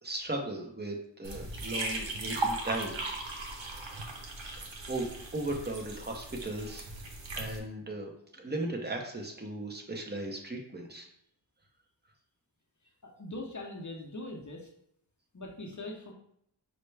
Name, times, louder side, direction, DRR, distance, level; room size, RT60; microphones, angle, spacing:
voice 1, 0.0-3.0 3.2-3.3 3.7-4.0 4.9-6.9 7.4-11.1, right 2 dB, 20° right, 2 dB, 0.8 m, -37 dB
sound 1, 1.2-7.6, right 2 dB, 85° right, 0.7 m, -37 dB
voice 2, 13.0-14.7 15.3-16.1, left 2 dB, 40° left, 0 dB, 0.7 m, -41 dB
5.6 x 2.2 x 3.2 m, 0.72 s
wide cardioid pair, 65°, 44 cm